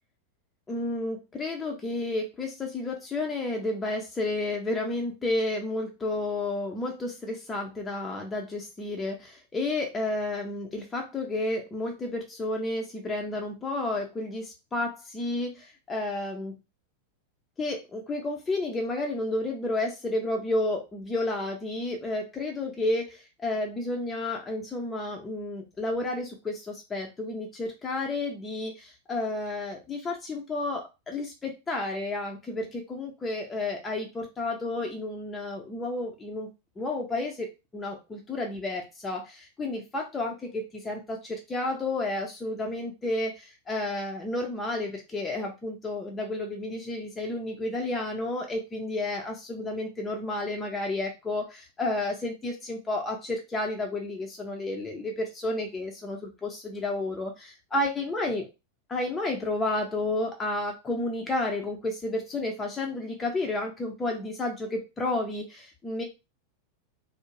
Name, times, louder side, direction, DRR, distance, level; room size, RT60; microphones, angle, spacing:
voice 1, 0.7-16.6 17.6-36.5 36.8-37.5 37.7-58.5 58.9-66.0, left 2 dB, 15° left, 0 dB, 0.5 m, -31 dB
2.4 x 2.0 x 3.1 m, 0.26 s
figure-of-eight pair, 90°, 0 cm